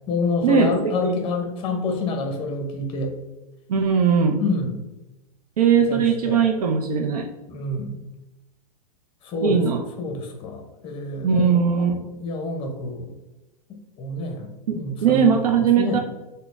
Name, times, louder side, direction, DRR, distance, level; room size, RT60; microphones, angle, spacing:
voice 1, 0.1-3.1 4.4-4.9 5.7-6.4 7.5-8.0 9.2-9.6 10.0-11.4 11.7-13.1 13.7-14.5 14.7-15.3 15.8-16.0, left 3 dB, 25° left, 4 dB, 0.6 m, -28 dB
voice 2, 3.7-4.4 5.6-7.3 9.4-9.8 11.2-11.9 14.7-16.0, right 6 dB, 75° right, 4 dB, 0.5 m, -19 dB
3.9 x 2.1 x 3.1 m, 1.0 s
hypercardioid pair, 105°, 20 cm